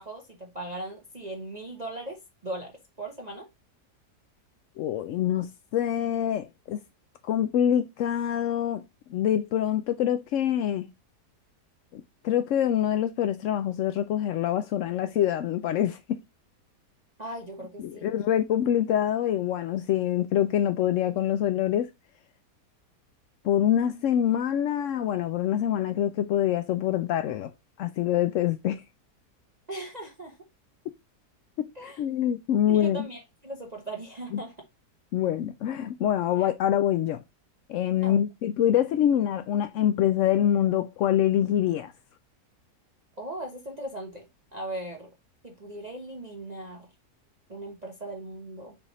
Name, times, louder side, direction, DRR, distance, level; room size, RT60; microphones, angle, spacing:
voice 1, 0.0-2.7 3.0-3.5 17.2-18.2 29.7-30.4 31.7-32.0 32.7-34.5 36.4-36.5 38.0-38.2 43.2-44.2 44.5-45.1 45.4-46.9 47.5-48.8, right 1 dB, 30° right, 1.0 m, -38 dB
voice 2, 4.8-6.8 7.2-8.8 9.1-10.9 11.9-16.2 17.8-21.9 23.4-27.5 27.8-28.8 31.6-33.1 35.1-37.2 37.7-41.9, left 10 dB, 75° left, 0.7 m, -25 dB
7.1 x 3.5 x 4.1 m
omnidirectional pair, 1.8 m